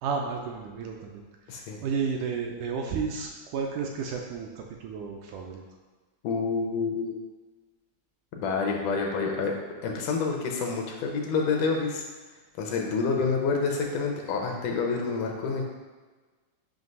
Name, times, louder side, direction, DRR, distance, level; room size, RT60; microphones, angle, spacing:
voice 1, 0.0-5.6 13.2-13.3, right 5 dB, 80° right, 1 dB, 1.9 m, -32 dB
voice 2, 1.5-1.8 6.2-7.2 8.4-9.5 9.8-12.0 12.6-15.6, left 4 dB, 75° left, 1 dB, 2.1 m, -28 dB
7.8 x 2.9 x 5.3 m, 1.3 s
omnidirectional pair, 3.9 m